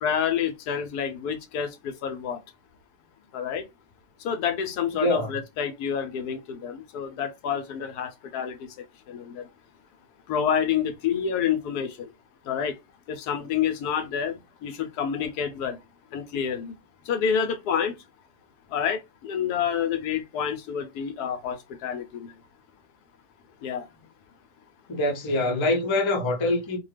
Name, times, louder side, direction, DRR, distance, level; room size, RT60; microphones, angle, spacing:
voice 1, 0.0-2.4 3.3-3.6 4.2-9.5 10.3-12.1 12.4-12.8 13.1-15.8 16.1-16.7 17.0-18.0 18.7-22.3 23.6-23.9, left 8 dB, 85° left, 1.2 m, -28 dB
voice 2, 24.9-26.8, left 2 dB, 35° left, 0.4 m, -24 dB
2.7 x 2.2 x 3.2 m
omnidirectional pair, 1.6 m